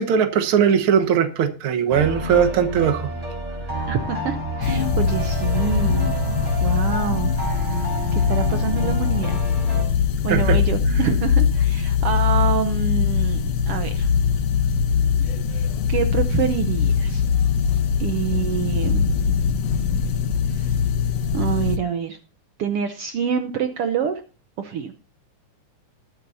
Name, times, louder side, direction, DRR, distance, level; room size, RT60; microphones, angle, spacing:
voice 1, 0.0-3.1 10.3-10.6, right 7 dB, 55° right, 1.8 m, -19 dB
sound 1, 1.9-9.8, right 2 dB, 10° right, 5.5 m, -29 dB
voice 2, 3.9-6.1 6.6-7.3 8.1-9.4 10.2-14.1 15.5-17.2 18.0-19.0 20.5-20.8 21.3-22.2 22.6-24.2 24.6-24.9, right 8 dB, 70° right, 1.4 m, -26 dB
sound 2, 4.6-21.8, left 7 dB, 65° left, 1.9 m, -22 dB
sound 3, 4.7-5.5 5.9-6.7 7.1-7.7 8.3-8.9 9.6-9.9 10.8-11.0 12.0-12.2 13.2-13.4 14.4-14.6 15.7-15.8 16.9-17.1 18.1-18.2 19.3-19.4, left 4 dB, 5° left, 3.1 m, -38 dB
20.5 x 8.9 x 2.7 m
omnidirectional pair, 3.5 m